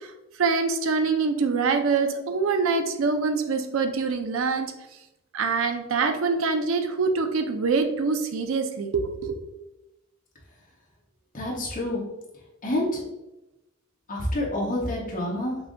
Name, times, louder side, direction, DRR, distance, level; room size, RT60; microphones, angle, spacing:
voice 1, 0.4-4.7 5.3-9.3, right 4 dB, 70° right, 7 dB, 0.5 m, -24 dB
voice 2, 11.3-12.0 12.6-13.0 14.1-15.6, left 1 dB, 40° left, -4 dB, 1.2 m, -27 dB
5.6 x 2.7 x 2.5 m, 0.96 s
head